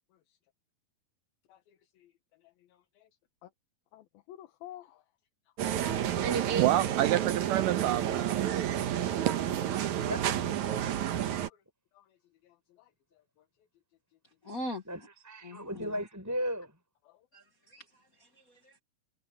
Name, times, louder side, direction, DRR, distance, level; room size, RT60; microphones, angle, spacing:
voice 1, 1.5-2.1 2.7-3.1 3.4-3.5 3.9-5.0 9.0-9.2 10.0-10.1 10.9-11.0 11.5-11.6 11.9-12.0 12.4-12.9 17.1-17.2, left 13 dB, 75° left, 3.0 m, -52 dB
sound 1, 5.6-11.5, right 10 dB, 60° right, 2.4 m, -30 dB
voice 2, 6.3-8.8 9.3-9.4, right 14 dB, 80° right, 2.0 m, -29 dB
voice 3, 10.0-10.4 14.9-16.7, equal, 5° right, 5.8 m, -36 dB
voice 4, 14.4-15.1 15.4-16.0 17.3-18.8, left 1 dB, 45° left, 1.1 m, -42 dB
omnidirectional pair, 4.3 m